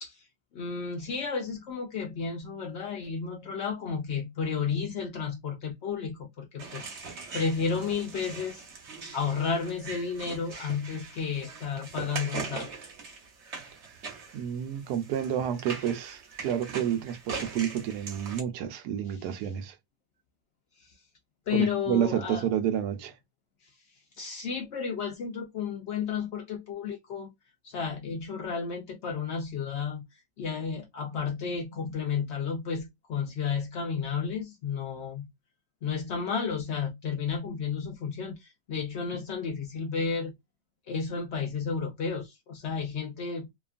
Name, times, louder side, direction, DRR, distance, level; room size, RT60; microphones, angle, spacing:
voice 1, 0.5-8.6 9.1-12.7 19.1-19.2 20.8-21.0 21.5-22.4 23.6-23.7 24.2-27.3 27.6-30.1 30.4-35.3 35.8-40.4 40.9-43.5, left 6 dB, 75° left, 0.6 m, -32 dB
sound 1, 6.6-18.4, right 4 dB, 50° right, 1.0 m, -41 dB
voice 2, 14.3-19.7 21.5-23.1, right 9 dB, 75° right, 1.1 m, -30 dB
2.9 x 2.3 x 2.4 m
omnidirectional pair, 1.8 m